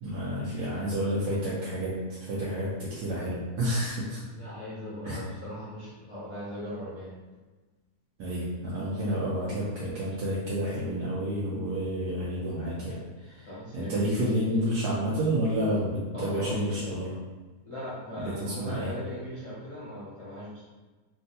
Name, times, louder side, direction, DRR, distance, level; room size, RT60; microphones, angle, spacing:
voice 1, 0.0-1.9 2.2-4.2 5.0-5.2 8.2-13.0 13.2-17.1 18.2-18.9, equal, 85° right, -8 dB, 1.2 m, -30 dB
voice 2, 4.3-7.1 13.5-14.0 16.1-16.6 17.6-20.6, equal, 55° left, -10 dB, 0.3 m, -39 dB
3.4 x 2.3 x 2.7 m, 1.2 s
omnidirectional pair, 1.7 m